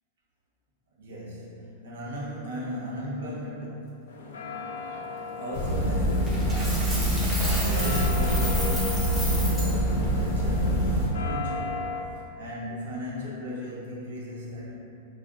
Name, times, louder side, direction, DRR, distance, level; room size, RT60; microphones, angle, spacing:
voice 1, 0.9-4.3 5.3-11.8 12.4-14.7, equal, 80° right, -6 dB, 0.7 m, -37 dB
sound 1, 4.1-12.0, left 4 dB, 90° left, 0.3 m, -37 dB
sound 2, 5.5-11.1, equal, 40° left, 0.6 m, -25 dB
Coin (dropping), 6.3-9.8, right 1 dB, 10° right, 0.6 m, -33 dB
2.4 x 2.1 x 3.6 m, 2.8 s
supercardioid pair, 140°, 0 cm